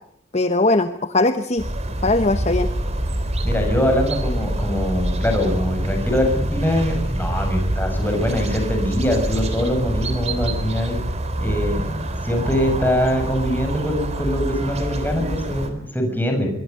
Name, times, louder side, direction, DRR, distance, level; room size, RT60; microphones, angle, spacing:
voice 1, 0.3-1.6 2.0-2.7, left 2 dB, 35° left, 10 dB, 0.9 m, -19 dB
sound 1, 1.6-15.7, right 1 dB, 35° right, 3.4 m, -25 dB
voice 2, 3.4-11.0 11.4-16.5, equal, 10° left, 3 dB, 6.5 m, -23 dB
24.5 x 23.5 x 5.4 m, 0.69 s
head